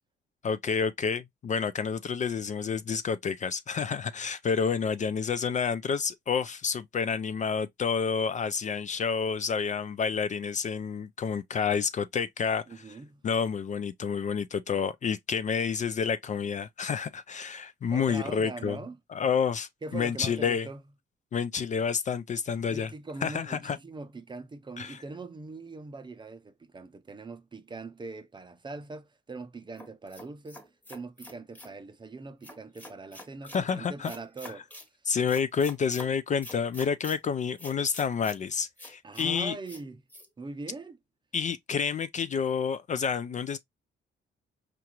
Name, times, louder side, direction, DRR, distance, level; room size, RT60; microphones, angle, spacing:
voice 1, 0.4-12.6 13.2-18.8 19.1-20.7 21.3-22.9 23.2-23.8 24.8-25.0 33.5-34.1 35.1-39.6 41.3-43.6, left 6 dB, 40° left, 0.4 m, -29 dB
voice 2, 12.7-13.2 17.9-19.0 19.8-20.8 22.7-34.7 39.0-40.0 40.4-41.0, right 3 dB, 25° right, 0.6 m, -42 dB
sound 1, 29.8-31.8 32.4-33.6 34.0-34.9 35.3-36.1 36.4-37.2 37.6-38.4 38.8-39.3 39.7-39.8 40.1-40.3, left 1 dB, 10° left, 1.1 m, -46 dB
4.6 x 2.5 x 2.8 m
cardioid pair, 90°, 20 cm